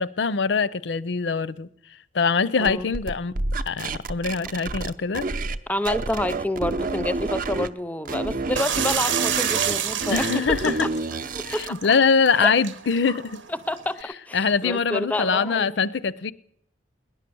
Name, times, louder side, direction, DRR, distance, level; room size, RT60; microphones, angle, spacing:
voice 1, 0.0-1.7 2.1-3.3 3.7-5.3 10.1-10.7 11.5-13.4 14.3-16.3, left 5 dB, 70° left, 0.5 m, -23 dB
voice 2, 2.6-2.9 5.7-10.3 10.8-10.9 11.3-11.6 12.4-12.5 13.5-15.7, left 1 dB, 10° left, 0.5 m, -28 dB
sound 1, 2.6-5.6 5.9-7.7 8.1-11.8, right 3 dB, 45° right, 0.6 m, -29 dB
sound 2, 8.6-14.0, right 8 dB, 90° right, 1.0 m, -29 dB
19.0 x 10.5 x 6.9 m
head